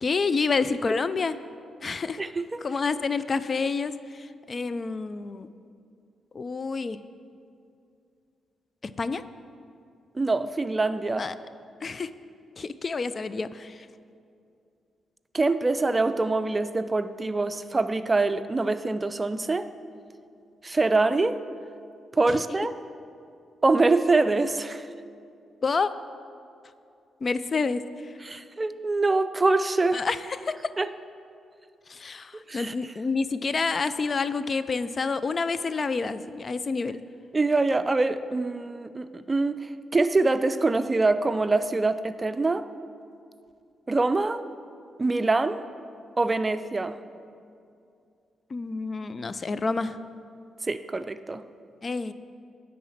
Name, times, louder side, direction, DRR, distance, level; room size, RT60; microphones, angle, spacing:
voice 1, 0.0-1.4 1.8-2.2 2.6-3.9 4.5-5.5 6.3-7.0 9.0-9.2 11.2-11.3 11.8-12.1 12.6-13.8 25.6-25.9 27.2-27.8 29.9-30.2 30.4-30.5 31.9-37.0 48.5-50.0 51.8-52.1, left 4 dB, 45° left, 14 dB, 0.4 m, -28 dB
voice 2, 2.2-2.6 10.1-11.3 15.3-19.7 20.6-21.4 22.1-22.8 23.6-24.9 28.2-30.1 30.8-30.9 32.5-32.7 37.3-42.7 43.9-44.4 45.0-45.6 46.2-47.0 50.6-51.4, right 3 dB, 30° right, 12 dB, 0.4 m, -24 dB
10.0 x 4.2 x 7.2 m, 2.5 s
supercardioid pair, 50°, 0 cm